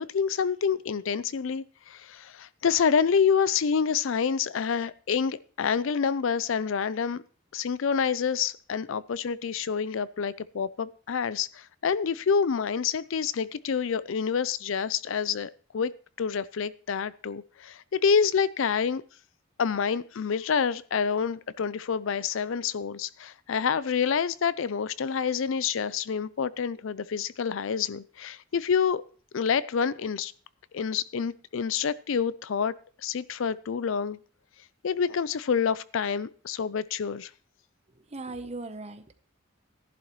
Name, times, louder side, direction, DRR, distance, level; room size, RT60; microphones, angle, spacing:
voice 1, 0.0-7.2 7.5-15.9 16.2-19.0 19.6-29.0 29.3-30.3 30.7-32.7 33.0-34.2 34.8-37.3, left 6 dB, 65° left, 18 dB, 0.4 m, -27 dB
voice 2, 37.9-39.1, right 2 dB, 30° right, 9 dB, 0.9 m, -39 dB
14.0 x 11.0 x 3.1 m, 0.41 s
head